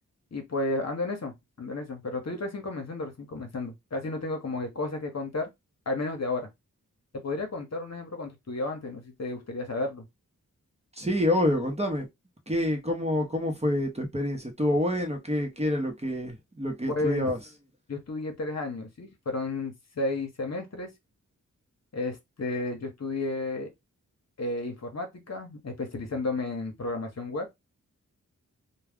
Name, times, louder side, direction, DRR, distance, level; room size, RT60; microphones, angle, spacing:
voice 1, 0.3-5.5 5.9-6.5 7.1-10.0 16.9-17.3 17.9-20.9 21.9-23.7 24.4-27.5, left 2 dB, 50° left, 1.0 m, -32 dB
voice 2, 10.9-12.1 12.5-17.4, left 1 dB, 20° right, 0.9 m, -27 dB
2.3 x 2.3 x 3.5 m
cardioid pair, 50°, 34 cm